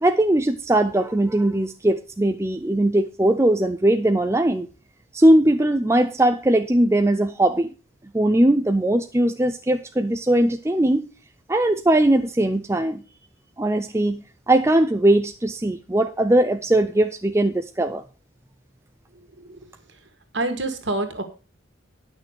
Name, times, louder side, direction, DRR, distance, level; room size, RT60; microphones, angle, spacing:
voice 1, 0.0-4.7 5.1-7.7 8.1-11.1 11.5-13.0 13.6-18.0, right 1 dB, 15° right, 7 dB, 0.5 m, -20 dB
voice 2, 19.2-19.6 20.3-21.2, right 2 dB, 60° right, 6 dB, 2.1 m, -27 dB
11.0 x 6.3 x 6.6 m, 0.34 s
head